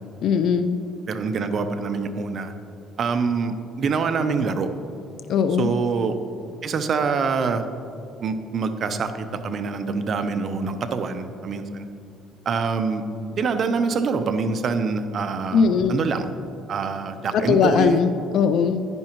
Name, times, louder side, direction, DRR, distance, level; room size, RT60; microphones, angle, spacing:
voice 1, 0.2-0.8 5.3-5.7 15.5-16.1 17.3-18.9, left 6 dB, 65° left, 9 dB, 0.3 m, -20 dB
voice 2, 1.1-2.5 3.0-4.7 5.6-6.2 6.6-7.6 8.2-11.9 12.5-13.0 13.4-16.3 16.7-18.0, right 5 dB, 50° right, 8 dB, 0.7 m, -25 dB
10.5 x 9.6 x 3.0 m, 2.6 s
cardioid pair, 110°, 0 cm